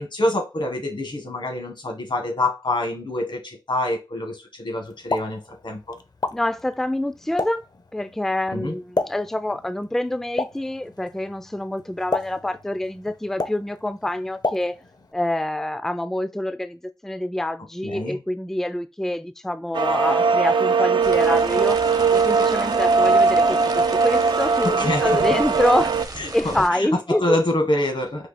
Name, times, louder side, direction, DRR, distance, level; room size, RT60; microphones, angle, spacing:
voice 1, 0.0-6.0 8.5-8.8 17.8-18.2 24.6-25.2 26.2-28.3, left 1 dB, 80° left, 1.5 m, -26 dB
Explosion, 4.9-15.1, left 3 dB, 55° left, 0.6 m, -33 dB
voice 2, 6.3-7.6 7.9-14.7 15.1-21.8 22.1-25.9 26.3-27.4, left 1 dB, 5° left, 0.3 m, -26 dB
sound 1, 19.7-26.1, right 4 dB, 80° right, 0.4 m, -19 dB
sound 2, 21.0-26.7, right 3 dB, 50° right, 0.7 m, -36 dB
4.7 x 2.7 x 4.1 m
wide cardioid pair, 75°, 8 cm